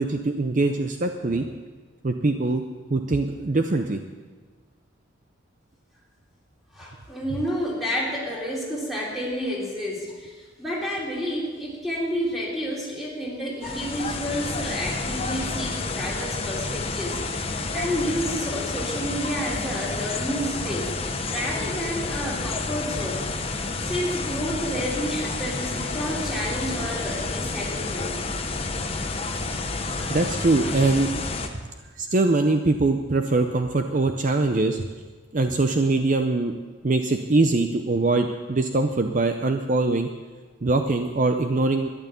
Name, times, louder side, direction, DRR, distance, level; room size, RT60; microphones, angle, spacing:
voice 1, 0.0-1.5 2.0-2.6 2.9-4.0 30.1-31.2 32.0-34.9 35.3-36.5 36.8-40.1 40.6-41.9, right 2 dB, 40° right, 6 dB, 0.5 m, -22 dB
voice 2, 6.7-23.3 23.8-28.1 29.5-30.2 30.6-30.8, equal, ahead, -4 dB, 3.1 m, -30 dB
sound 1, 13.6-31.5, left 3 dB, 30° left, 0.9 m, -30 dB
12.5 x 10.5 x 6.9 m, 1.4 s
head